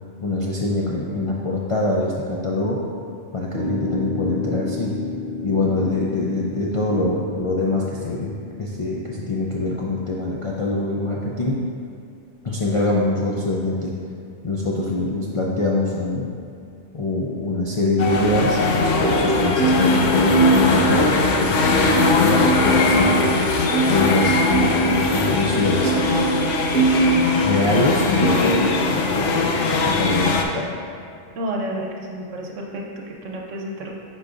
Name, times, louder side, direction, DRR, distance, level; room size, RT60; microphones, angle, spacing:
voice 1, 0.2-2.8 3.3-5.0 5.4-11.6 12.4-14.0 14.4-16.3 16.9-23.3 23.9-26.4 27.4-30.7, left 2 dB, 55° left, -4 dB, 0.3 m, -24 dB
sound 1, 3.5-9.9, left 2 dB, 55° right, 1.5 m, -32 dB
sound 2, 18.0-30.4, left 4 dB, 90° left, 0.9 m, -21 dB
sound 3, 18.8-27.8 28.2-28.7, right 2 dB, 20° left, 0.7 m, -22 dB
voice 2, 31.3-33.9, right 1 dB, 90° right, 0 dB, 1.1 m, -30 dB
9.6 x 3.9 x 2.5 m, 2.5 s
omnidirectional pair, 1.2 m